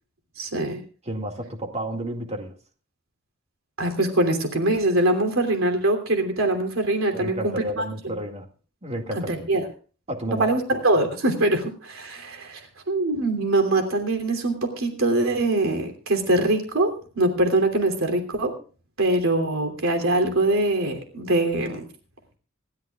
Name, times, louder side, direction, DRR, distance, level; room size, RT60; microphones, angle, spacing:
voice 1, 0.4-0.8 3.8-7.5 9.1-9.6 10.4-12.6 12.9-18.5 19.0-21.9, right 2 dB, 80° right, 5 dB, 3.0 m, -23 dB
voice 2, 1.1-2.5 7.1-8.5 8.8-9.4 10.1-10.5, right 1 dB, 30° right, 4 dB, 2.1 m, -31 dB
26.5 x 13.0 x 2.4 m, 0.38 s
head